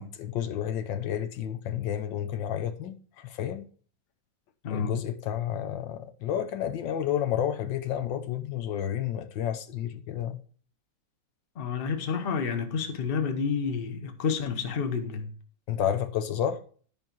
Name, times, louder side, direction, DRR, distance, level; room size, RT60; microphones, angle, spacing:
voice 1, 0.2-3.7 4.7-10.4 15.7-16.6, left 10 dB, 75° left, 1.5 m, -30 dB
voice 2, 11.5-15.3, left 6 dB, 35° left, 1.0 m, -29 dB
11.0 x 5.4 x 4.5 m
omnidirectional pair, 2.0 m